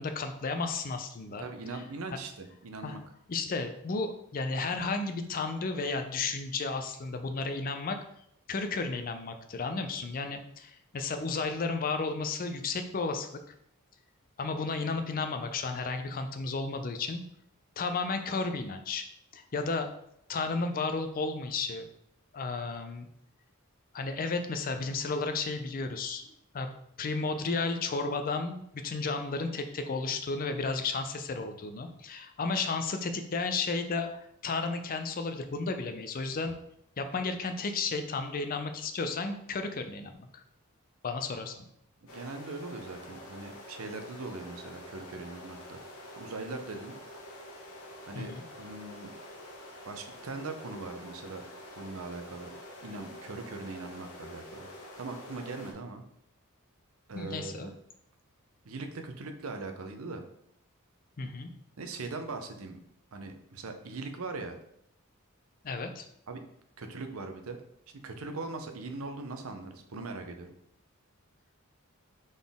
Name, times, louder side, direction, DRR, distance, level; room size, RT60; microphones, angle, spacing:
voice 1, 0.0-1.5 1.7-1.8 2.8-3.0 3.3-8.0 8.5-13.5 14.4-17.2 17.8-19.0 19.3-19.9 20.3-21.9 22.3-23.1 23.9-26.3 26.5-26.7 27.0-36.6 37.0-40.4 41.0-41.5 48.1-48.4 57.1-57.7 61.2-61.5 65.6-66.1, left 4 dB, 40° left, 7 dB, 0.5 m, -33 dB
voice 2, 1.4-3.0 42.0-45.8 46.2-46.9 48.1-49.1 49.8-51.4 51.7-52.5 52.8-54.7 55.0-56.0 57.1-57.7 58.6-60.3 61.8-62.8 63.1-64.6 66.3-66.4 66.8-67.6 68.0-70.5, right 3 dB, 70° right, 6 dB, 0.6 m, -40 dB
sound 1, 42.1-55.7, left 1 dB, 80° left, 1.0 m, -47 dB
4.0 x 3.7 x 3.5 m, 0.73 s
head